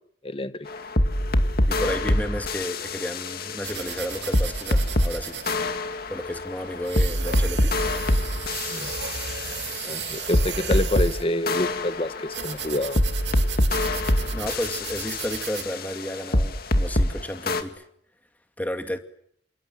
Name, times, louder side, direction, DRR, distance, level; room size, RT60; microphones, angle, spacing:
sound 1, 0.7-5.1 5.5-11.1 11.5-17.1 17.5-17.6, left 1 dB, 60° left, 2.3 m, -25 dB
voice 1, 1.7-5.4 6.1-7.7 14.3-17.8 18.6-19.0, equal, 10° left, 6 dB, 2.3 m, -32 dB
sound 2, 3.6-15.7, right 8 dB, 75° right, 2.6 m, -35 dB
voice 2, 9.8-13.0, left 1 dB, 30° left, 11 dB, 1.4 m, -27 dB
28.5 x 27.5 x 7.7 m, 0.70 s
head